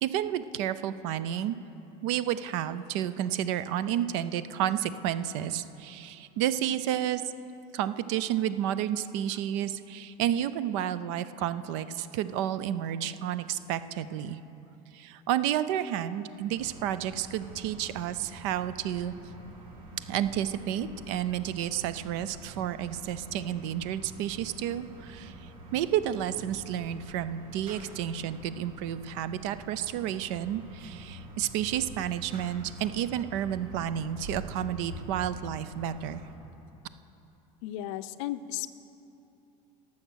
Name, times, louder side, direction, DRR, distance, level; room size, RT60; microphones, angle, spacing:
voice 1, 0.0-1.6 2.0-7.2 7.7-14.4 14.9-19.1 20.1-25.3 25.7-36.2, right 11 dB, 60° right, 14 dB, 0.5 m, -31 dB
sound 1, 16.5-36.4, right 1 dB, 80° right, 2.1 m, -46 dB
voice 2, 37.6-38.7, left 13 dB, 60° left, 12 dB, 0.5 m, -35 dB
17.5 x 7.1 x 6.3 m, 3.0 s
cardioid pair, 175°, 18 cm